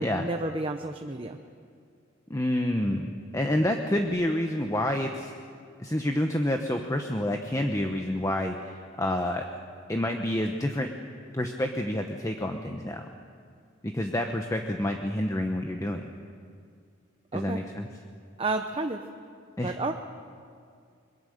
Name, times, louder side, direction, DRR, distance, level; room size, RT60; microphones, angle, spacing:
voice 1, 0.0-1.4 17.3-17.6 18.4-19.0 19.6-19.9, right 2 dB, 30° right, 5 dB, 0.8 m, -31 dB
voice 2, 2.3-5.3 5.8-9.4 9.9-10.9 11.3-13.1 13.8-16.0 17.3-17.9 19.6-19.7, left 1 dB, 15° left, 4 dB, 1.0 m, -28 dB
23.0 x 22.0 x 6.6 m, 2.3 s
head